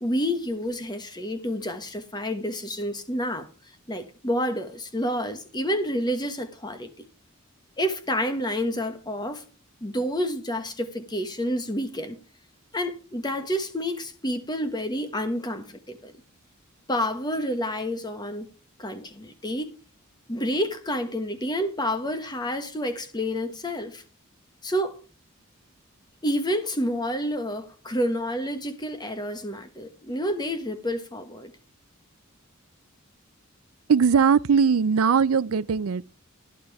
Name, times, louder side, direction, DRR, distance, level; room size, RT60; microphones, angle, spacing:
voice 1, 0.0-3.5 3.9-7.1 7.8-9.4 9.8-12.2 12.7-16.1 16.9-18.5 18.8-19.7 20.3-24.0 24.6-25.0 26.2-31.5, equal, 20° left, 1.3 m, -29 dB
voice 2, 33.9-36.2, right 6 dB, 85° right, 0.5 m, -20 dB
13.5 x 11.0 x 3.5 m
head